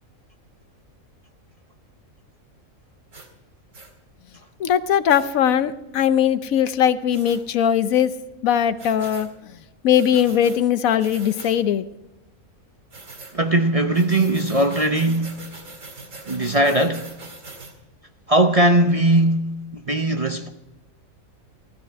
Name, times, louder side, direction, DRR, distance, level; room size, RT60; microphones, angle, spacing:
sound 1, 3.1-3.3 3.7-3.9 5.1-5.3 7.1-7.4 8.8-9.3 9.9-10.6 11.0-11.6 12.9-13.4 13.9-17.7, right 3 dB, 65° right, 2.4 m, -41 dB
voice 1, 4.6-8.1 8.4-9.6 9.8-11.8, left 9 dB, 80° left, 1.2 m, -20 dB
voice 2, 13.3-15.5 16.3-17.1 18.3-20.5, right 1 dB, 35° right, 0.6 m, -19 dB
15.5 x 13.5 x 4.6 m
omnidirectional pair, 1.4 m